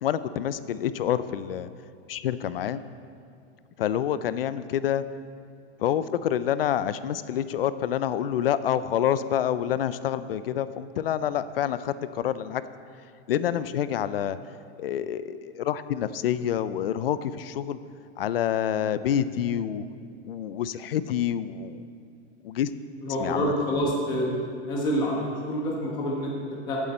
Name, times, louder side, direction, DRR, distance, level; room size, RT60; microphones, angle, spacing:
voice 1, 0.0-1.7 2.1-2.8 3.8-5.0 5.8-12.6 13.3-14.4 14.8-17.8 18.2-19.8 20.2-21.8 22.4-22.7 23.2-23.5, left 10 dB, 55° left, 14 dB, 0.5 m, -27 dB
voice 2, 23.0-24.3 24.6-26.9, equal, 10° left, -3 dB, 1.1 m, -27 dB
15.5 x 8.3 x 4.3 m, 2.4 s
supercardioid pair, 180°, 34 cm